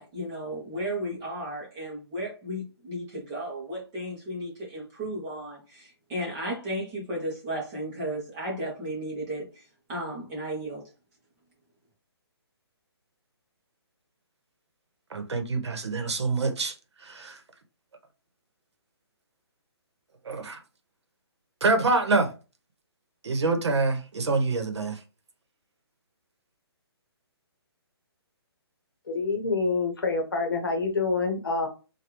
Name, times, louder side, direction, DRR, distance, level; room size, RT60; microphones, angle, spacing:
voice 1, 0.0-9.6 9.9-10.8, right 1 dB, 10° right, 0.6 m, -34 dB
voice 2, 15.1-16.7 17.0-17.4 20.2-20.6 21.6-22.3 23.2-25.0, right 3 dB, 85° right, 0.9 m, -26 dB
voice 3, 29.1-31.7, left 4 dB, 55° left, 0.9 m, -27 dB
3.3 x 2.2 x 2.9 m
hypercardioid pair, 180°, 14 cm